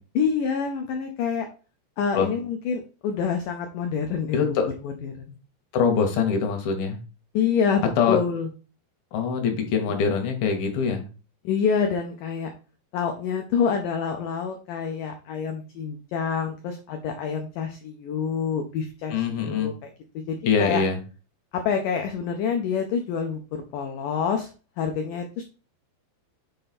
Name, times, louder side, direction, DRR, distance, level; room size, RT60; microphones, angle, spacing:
voice 1, 0.2-1.5 2.0-4.6 4.8-5.4 7.3-8.5 9.9-10.0 11.4-12.5 12.9-19.9 20.3-20.8 21.5-24.5 24.8-25.4, left 6 dB, 90° left, 5 dB, 1.8 m, -27 dB
voice 2, 4.3-4.6 5.7-7.0 8.0-8.2 9.1-11.1 19.1-19.7 20.5-21.0, left 6 dB, 70° left, 4 dB, 2.7 m, -23 dB
6.8 x 3.9 x 4.1 m, 0.34 s
omnidirectional pair, 4.7 m